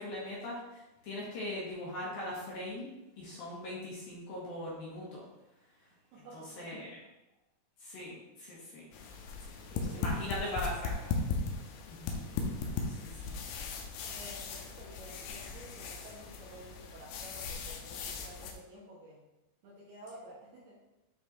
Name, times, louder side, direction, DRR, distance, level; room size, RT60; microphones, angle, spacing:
voice 1, 0.0-2.9 3.2-5.2 6.2-6.9 7.8-8.8 9.9-10.7 11.0-11.1 11.9-12.3 12.8-13.3, left 1 dB, 60° left, -7 dB, 2.9 m, -40 dB
voice 2, 6.1-7.0 9.7-11.0 14.0-19.2 19.6-20.8, right 1 dB, 70° right, -7 dB, 2.7 m, -52 dB
sound 1, 8.9-18.5, left 4 dB, 80° left, 3.2 m, -38 dB
10.0 x 4.3 x 2.8 m, 0.95 s
omnidirectional pair, 5.8 m